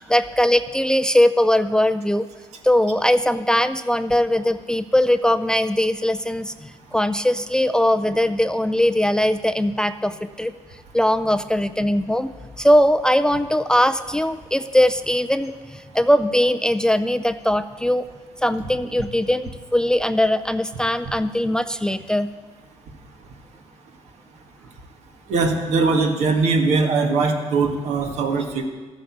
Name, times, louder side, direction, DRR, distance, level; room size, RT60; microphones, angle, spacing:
voice 1, 0.0-2.3 2.6-10.5 10.9-18.0 18.4-22.3, left 1 dB, 5° left, 11 dB, 0.4 m, -20 dB
voice 2, 25.3-28.6, right 4 dB, 75° right, 4 dB, 1.7 m, -20 dB
13.0 x 8.5 x 7.2 m, 1.3 s
cardioid pair, 105°, 12 cm